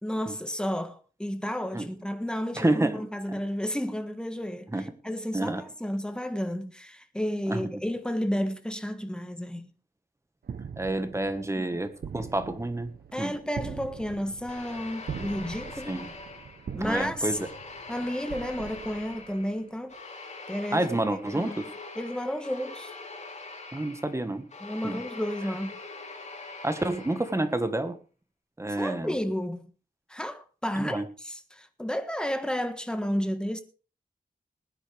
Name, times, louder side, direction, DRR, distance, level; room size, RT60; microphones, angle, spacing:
voice 1, 0.0-9.7 13.1-16.0 16.7-17.4 17.9-19.9 20.5-21.0 21.3-21.6 21.9-22.9 24.6-25.8 28.8-29.7 30.1-33.6, equal, 5° left, 1.5 m, -32 dB
voice 2, 2.6-3.4 4.7-4.9 5.3-5.6 7.5-7.6 10.8-13.4 15.8-16.1 16.8-17.4 20.7-21.7 23.7-24.5 24.8-25.0 26.6-28.0 28.6-29.2 30.8-31.1, right 1 dB, 20° right, 1.5 m, -29 dB
sound 1, 10.4-19.7, right 7 dB, 80° right, 0.9 m, -42 dB
sound 2, 14.5-16.9 17.3-27.6, left 3 dB, 45° left, 2.7 m, -43 dB
20.0 x 10.0 x 3.4 m
wide cardioid pair, 105°, 16 cm